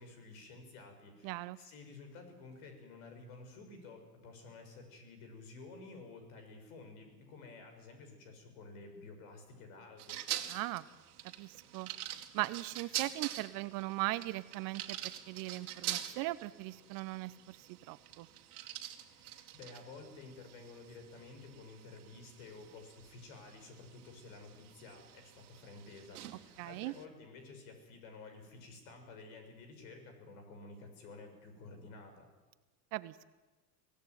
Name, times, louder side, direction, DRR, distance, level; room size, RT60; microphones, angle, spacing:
voice 1, 0.0-10.2 18.9-32.3, left 3 dB, 60° left, 6 dB, 7.0 m, -52 dB
voice 2, 1.2-1.6 10.5-10.8 11.4-11.9 12.3-18.3 26.6-26.9 32.9-33.3, right 19 dB, 45° right, 15 dB, 1.0 m, -39 dB
ER Vendingmachine, 10.0-27.0, right 12 dB, 65° right, 2.2 m, -45 dB
24.5 x 17.0 x 9.5 m, 1.2 s
hypercardioid pair, 90°, 48 cm